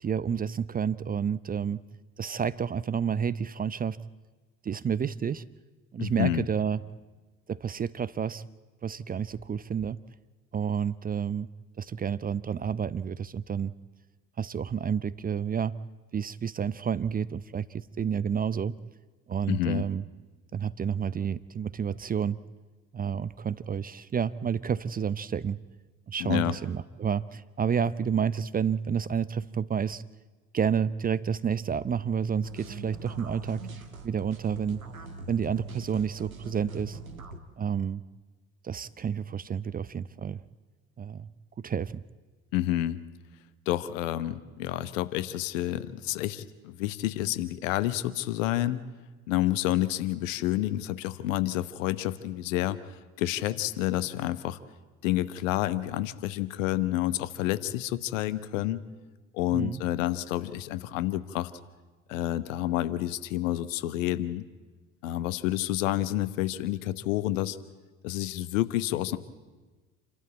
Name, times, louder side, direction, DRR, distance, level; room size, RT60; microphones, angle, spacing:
voice 1, 0.0-1.8 2.2-4.0 4.6-5.4 5.9-6.8 7.5-8.4 8.8-10.0 10.5-11.5 11.8-13.7 14.4-15.7 16.1-18.8 19.3-20.0 20.5-22.4 22.9-25.6 26.1-30.0 30.5-33.7 34.0-34.8 35.3-37.0 37.6-38.0 38.6-40.4 41.0-41.3 41.6-42.0 59.5-59.8, right 7 dB, 20° right, 18 dB, 0.6 m, -30 dB
voice 2, 6.0-6.4 19.5-19.9 26.2-26.6 42.5-43.0 43.7-48.8 49.3-54.6 55.0-58.8 59.3-61.5 62.1-64.4 65.0-67.6 68.0-69.2, left 14 dB, 65° left, 15 dB, 1.1 m, -29 dB
sound 1, 32.4-37.4, right 3 dB, 85° right, 1.5 m, -42 dB
28.0 x 13.0 x 8.7 m, 1.3 s
figure-of-eight pair, 55°, 41 cm